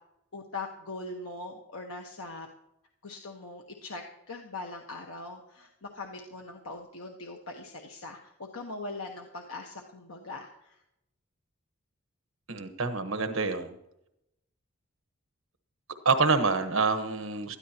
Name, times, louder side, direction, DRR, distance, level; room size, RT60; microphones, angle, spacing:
voice 1, 0.3-2.5 3.0-10.8, left 3 dB, 80° left, 1 dB, 1.3 m, -41 dB
voice 2, 12.5-13.7 16.0-17.6, right 4 dB, 70° right, 8 dB, 1.2 m, -27 dB
19.5 x 13.5 x 2.9 m, 0.84 s
head